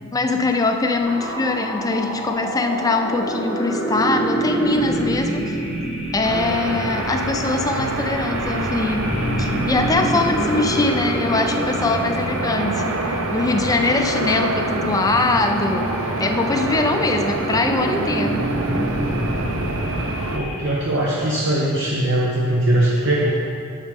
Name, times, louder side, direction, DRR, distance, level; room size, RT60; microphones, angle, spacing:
voice 1, 0.0-5.7 6.1-9.1 9.4-18.5, left 3 dB, 15° left, 5 dB, 0.5 m, -22 dB
sound 1, 1.0-20.6, right 1 dB, 5° right, 1.4 m, -28 dB
sound 2, 6.2-20.4, right 2 dB, 80° right, 0.7 m, -26 dB
voice 2, 20.3-23.3, right 1 dB, 55° right, -5 dB, 1.0 m, -20 dB
11.0 x 7.4 x 3.6 m, 2.4 s
head